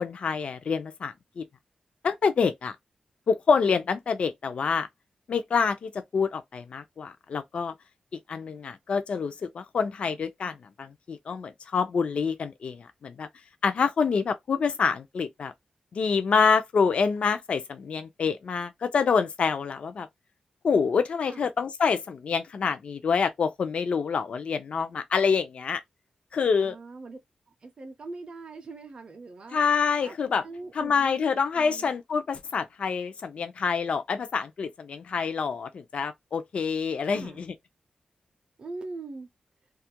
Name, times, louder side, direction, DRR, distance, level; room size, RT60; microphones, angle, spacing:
voice 1, 0.0-1.4 2.0-2.8 3.3-4.9 5.3-7.7 8.1-13.3 13.6-15.5 15.9-20.1 20.6-25.8 26.3-26.8 29.5-30.4 30.7-37.5, left 5 dB, 60° left, 0.4 m, -27 dB
voice 2, 26.6-27.2 27.6-29.6 30.0-30.2 30.4-31.9 37.1-37.5 38.6-39.3, right 3 dB, 40° right, 0.4 m, -41 dB
2.3 x 2.1 x 2.7 m
wide cardioid pair, 155°, 2 cm